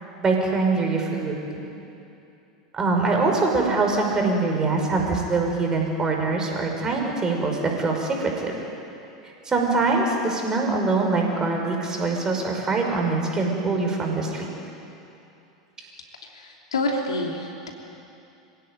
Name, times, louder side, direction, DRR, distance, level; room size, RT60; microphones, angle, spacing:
voice 1, 0.2-1.4 2.7-8.5 9.5-14.5, right 3 dB, 20° right, 1 dB, 5.6 m, -23 dB
voice 2, 16.3-17.7, left 2 dB, 75° left, 1 dB, 3.0 m, -28 dB
26.0 x 16.5 x 9.2 m, 2.8 s
figure-of-eight pair, 85°, 3 cm